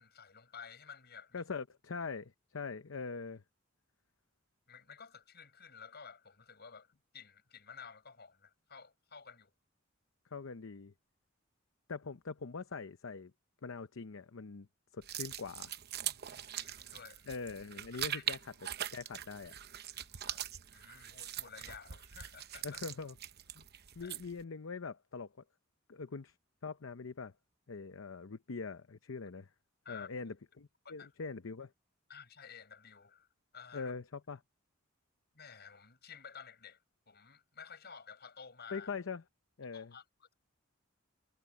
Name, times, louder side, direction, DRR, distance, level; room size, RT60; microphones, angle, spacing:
voice 1, 0.0-1.4 4.7-9.5 16.0-17.2 18.1-18.2 19.9-22.8 24.0-24.2 29.8-30.1 30.8-31.1 32.1-33.3 33.5-33.9 35.3-36.8 37.1-38.9 39.7-40.3, left 6 dB, 55° left, 6.4 m, -53 dB
voice 2, 1.3-3.4 10.3-10.9 11.9-13.3 13.6-14.7 14.9-15.7 17.3-18.4 18.9-19.5 22.6-23.2 23.5-23.6 24.0-25.3 25.9-26.3 26.6-27.3 27.7-29.5 29.9-31.7 33.7-34.4 38.7-39.2 39.6-39.9, left 4 dB, 75° left, 0.7 m, -43 dB
sound 1, 15.0-24.4, right 11 dB, 55° right, 0.8 m, -42 dB
head